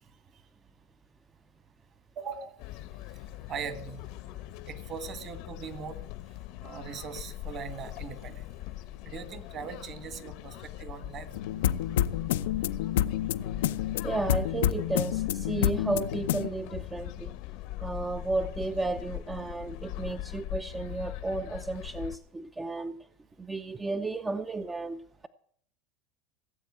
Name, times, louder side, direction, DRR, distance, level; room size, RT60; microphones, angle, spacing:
voice 1, 2.2-2.6 3.1-3.2 3.5-4.1 4.7-6.0 6.6-8.5 9.0-11.4, right 6 dB, 40° right, 1.9 m, -40 dB
sound 1, 2.6-22.2, left 15 dB, 60° left, 0.9 m, -41 dB
sound 2, 11.3-16.5, left 11 dB, 90° left, 0.6 m, -28 dB
voice 2, 14.0-17.3 17.8-23.0 23.4-25.0, right 2 dB, 10° right, 0.6 m, -33 dB
17.0 x 7.8 x 8.7 m
supercardioid pair, 135°, 0 cm